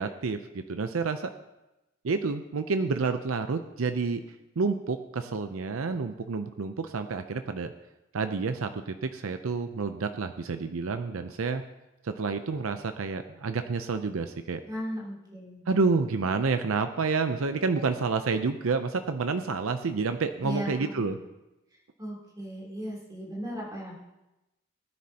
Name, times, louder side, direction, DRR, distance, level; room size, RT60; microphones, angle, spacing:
voice 1, 0.0-1.3 2.0-4.2 4.6-7.7 8.1-11.6 12.0-14.6 15.7-21.2, right 4 dB, 85° right, 8 dB, 0.6 m, -29 dB
voice 2, 14.7-15.6 20.4-21.2 22.0-23.9, equal, 20° right, -5 dB, 3.3 m, -36 dB
19.5 x 9.5 x 2.9 m, 0.96 s
head